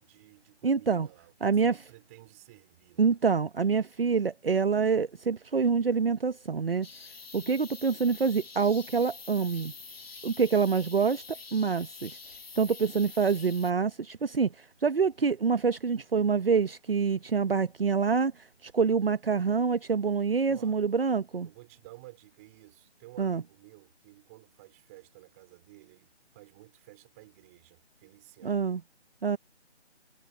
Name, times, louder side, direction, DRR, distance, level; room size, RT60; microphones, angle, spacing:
voice 1, 0.0-3.1 20.5-20.8 21.4-28.7, right 21 dB, 15° right, 4.0 m, -54 dB
voice 2, 0.6-1.1 1.4-1.8 3.0-6.9 7.3-9.7 10.2-11.2 11.5-12.2 12.6-21.5 23.2-23.4 28.4-28.8 29.2-29.4, right 5 dB, 55° right, 1.1 m, -26 dB
sound 1, 6.8-13.7, left 4 dB, 60° left, 1.9 m, -46 dB
figure-of-eight pair, 170°, 34 cm